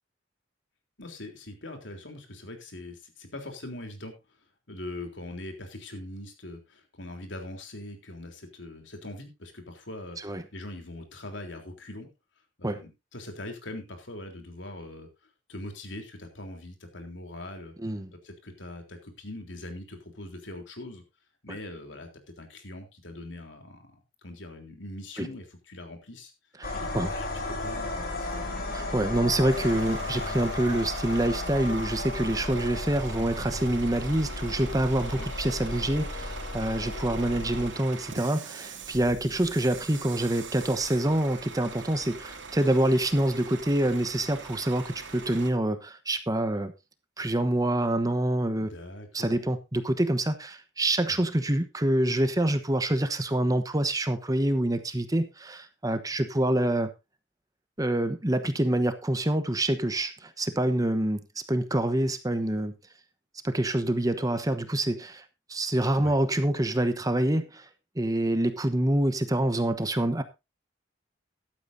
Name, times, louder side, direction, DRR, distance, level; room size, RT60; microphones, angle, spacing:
voice 1, 1.0-4.1 4.7-12.1 12.6-15.1 15.5-17.7 18.1-21.0 21.4-22.1 22.4-26.3 26.7-28.5 35.1-35.3 48.6-49.4 51.0-51.2 65.9-66.2, left 1 dB, 75° left, 3.5 m, -42 dB
sound 1, 26.6-37.7, left 2 dB, 50° left, 3.7 m, -34 dB
voice 2, 26.6-27.1 28.7-46.7 47.2-48.7 49.1-56.9 57.8-61.2 61.5-62.7 63.4-65.2 65.5-67.6 68.0-70.2, right 1 dB, 20° right, 1.1 m, -26 dB
Bus / Idling, 29.5-45.5, right 4 dB, 75° right, 2.8 m, -42 dB
14.5 x 12.0 x 2.7 m
head